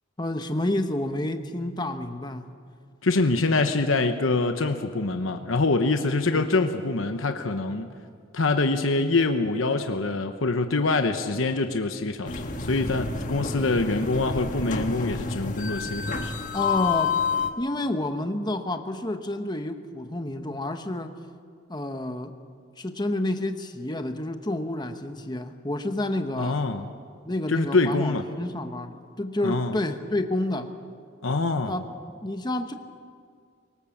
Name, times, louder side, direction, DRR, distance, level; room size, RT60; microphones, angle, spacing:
voice 1, 0.2-2.5 6.3-6.5 16.5-17.1 17.6-21.1 21.7-22.3 22.8-26.6 27.2-30.7 31.6-31.8 32.2-32.7, left 1 dB, 20° left, 7 dB, 1.0 m, -29 dB
voice 2, 3.0-7.9 8.3-16.3 26.4-26.9 27.5-28.2 29.4-29.7 31.2-31.7, left 3 dB, 75° left, 7 dB, 1.0 m, -25 dB
sound 1, 12.3-17.5, left 5 dB, 40° left, 1.5 m, -29 dB
24.0 x 19.0 x 7.2 m, 2.1 s
head